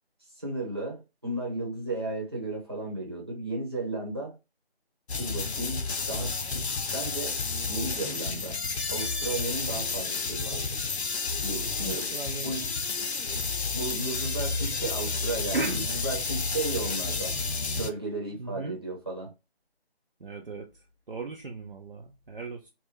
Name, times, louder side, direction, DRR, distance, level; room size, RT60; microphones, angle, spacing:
voice 1, 0.4-4.4 5.2-6.6 6.9-7.4 7.6-8.6 8.9-10.8 11.4-12.1 12.4-12.7 13.7-17.4 17.7-19.3, right 2 dB, 25° right, 0.9 m, -34 dB
sound 1, 5.1-17.9, left 4 dB, 90° left, 0.7 m, -31 dB
voice 2, 11.7-12.7 15.5-15.9 18.4-18.7 20.2-22.7, right 3 dB, 55° right, 0.6 m, -37 dB
3.4 x 2.1 x 3.2 m
figure-of-eight pair, 170°, 31 cm